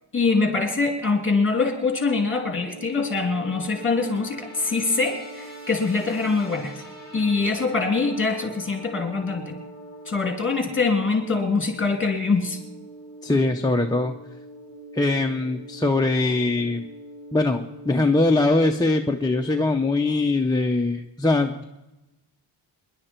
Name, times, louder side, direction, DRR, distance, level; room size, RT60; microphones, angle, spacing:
voice 1, 0.1-6.8 7.1-9.6 10.1-12.6, left 4 dB, 25° left, 3 dB, 2.9 m, -24 dB
sound 1, 2.5-20.2, right 1 dB, 55° right, 4.5 m, -42 dB
voice 2, 13.2-14.1 14.9-16.8 17.3-21.6, left 2 dB, 10° left, 1 dB, 0.6 m, -22 dB
27.0 x 11.0 x 4.5 m, 0.99 s
wide cardioid pair, 160°, 44 cm